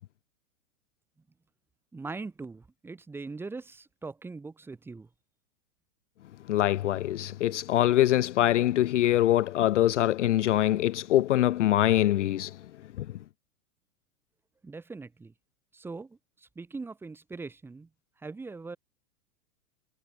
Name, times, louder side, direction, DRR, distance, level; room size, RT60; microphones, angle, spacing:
voice 1, 1.9-5.1 14.6-15.3 15.7-17.9 18.2-18.8, right 3 dB, 5° right, 5.8 m, -41 dB
voice 2, 6.5-12.6 13.0-13.1, left 13 dB, 60° left, 0.7 m, -24 dB
supercardioid pair, 175°, 42 cm